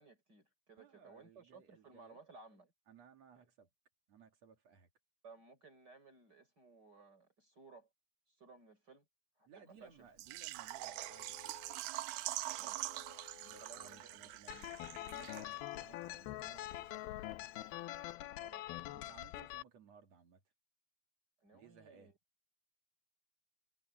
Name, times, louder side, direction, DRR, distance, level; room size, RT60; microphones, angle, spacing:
voice 1, 0.0-2.7 5.2-7.9 8.3-9.1 9.4-9.9 12.6-12.9 13.4-14.8 18.3-19.1 19.5-19.6 21.4-22.2, right 4 dB, 25° right, 4.3 m, -60 dB
voice 2, 0.8-2.2 2.9-3.7 4.1-4.9 9.5-11.6 13.5-17.3 18.9-20.4 21.5-22.1, right 6 dB, 45° right, 3.0 m, -61 dB
Water / Liquid, 10.2-15.8 16.1-16.2 16.6-16.7, right 16 dB, 75° right, 2.5 m, -44 dB
sound 1, 10.3-12.1 12.5-19.2 19.5-19.6, left 10 dB, 50° left, 2.9 m, -63 dB
sound 2, 14.5-19.6, left 15 dB, 75° left, 2.6 m, -44 dB
omnidirectional pair, 4.5 m